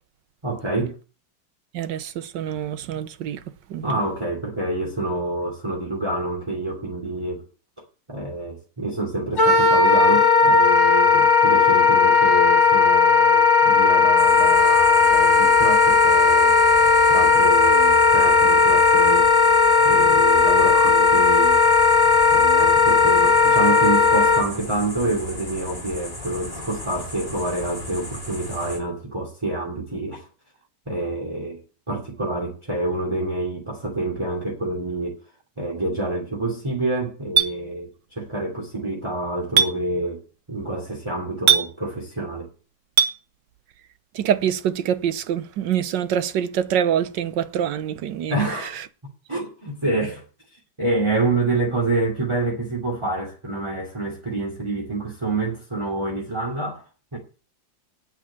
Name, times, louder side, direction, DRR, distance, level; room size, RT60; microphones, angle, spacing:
voice 1, 0.4-0.9 3.8-7.4 8.1-16.5 17.1-19.3 19.8-21.6 22.3-30.3 30.9-31.6 31.9-35.2 35.6-40.2 40.5-42.5 48.3-48.8 49.3-56.8 57.1-57.2, right 2 dB, 15° right, 2.7 m, -27 dB
voice 2, 1.7-3.4 3.7-3.9 20.8-20.9 44.1-48.3, right 9 dB, 70° right, 1.5 m, -25 dB
Wind instrument woodwind instrument, 9.4-24.4, left 4 dB, 35° left, 2.0 m, -16 dB
sound 1, 14.2-28.8, left 1 dB, 20° left, 2.5 m, -36 dB
Chink clink, 37.4-37.5 39.6-39.7 41.5-41.7 43.0-43.1, right 7 dB, 50° right, 1.1 m, -16 dB
9.4 x 6.5 x 8.3 m
omnidirectional pair, 2.1 m